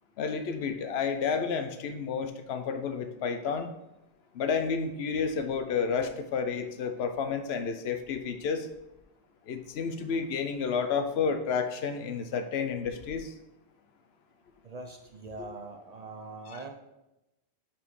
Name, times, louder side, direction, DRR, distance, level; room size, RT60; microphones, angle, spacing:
voice 1, 0.2-3.7 4.3-8.7 9.5-13.3 16.5-16.6, left 6 dB, 80° left, 8 dB, 0.9 m, -31 dB
voice 2, 14.6-16.7, right 3 dB, 50° right, 4 dB, 0.5 m, -42 dB
5.5 x 4.3 x 4.6 m, 0.93 s
omnidirectional pair, 1.1 m